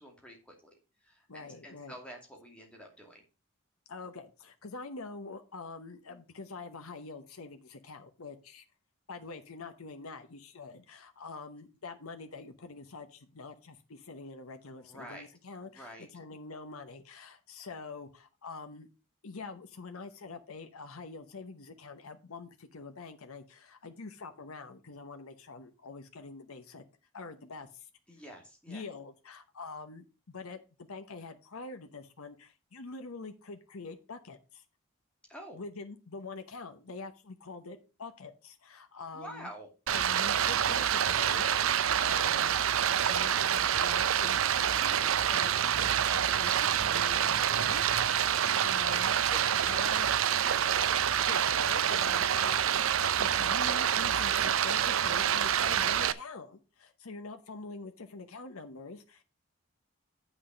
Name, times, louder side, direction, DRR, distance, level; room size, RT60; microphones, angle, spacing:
voice 1, 0.0-3.2 14.8-15.3 15.7-16.1 28.1-28.8 35.3-35.6 39.1-39.7 52.2-52.8, equal, 5° left, 0 dB, 2.4 m, -48 dB
voice 2, 1.3-2.0 3.9-8.6 9.1-18.9 19.2-26.8 27.1-27.9 28.7-34.6 35.5-39.5 39.9-42.6 43.0-44.4 44.7-50.1 51.2-52.6 52.9-59.2, left 4 dB, 85° left, 7 dB, 1.0 m, -45 dB
Stream, 39.9-56.1, right 9 dB, 70° right, 0.5 m, -27 dB
7.9 x 6.3 x 5.0 m, 0.32 s
head